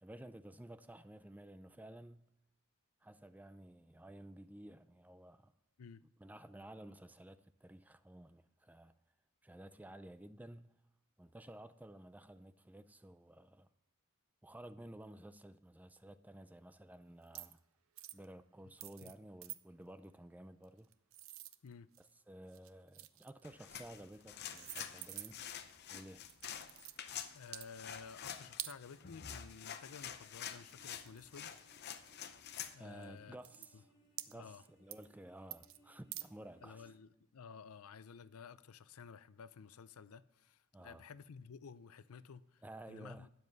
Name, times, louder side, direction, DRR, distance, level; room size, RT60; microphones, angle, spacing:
voice 1, 0.0-2.3 3.0-5.5 6.2-9.0 9.4-10.8 11.2-13.7 14.4-17.6 18.1-20.9 22.3-25.4 25.9-26.2 32.8-33.9 34.3-36.9 40.7-41.0 42.6-43.3, right 1 dB, 5° right, 0.4 m, -54 dB
sound 1, 17.3-17.6 17.9-18.2 18.8-19.1 19.4-19.6 20.6-22.1 22.5-23.4 24.1-24.2 24.5-25.6 26.3-27.0 27.4-27.7 28.6-28.8 30.2-30.3 30.7-31.8 32.5-32.6 33.0-33.1 33.4-33.7 34.2-34.7 34.9-35.1 35.5-35.8 36.1-36.3, right 15 dB, 65° right, 0.5 m, -48 dB
sound 2, 23.4-32.7, left 9 dB, 50° left, 0.7 m, -48 dB
voice 2, 27.3-31.6 32.7-33.4 33.7-33.8 34.3-34.6 36.6-43.3, left 5 dB, 85° left, 0.5 m, -53 dB
sound 3, 30.6-36.9, right 2 dB, 20° left, 4.5 m, -70 dB
12.5 x 9.5 x 4.0 m
head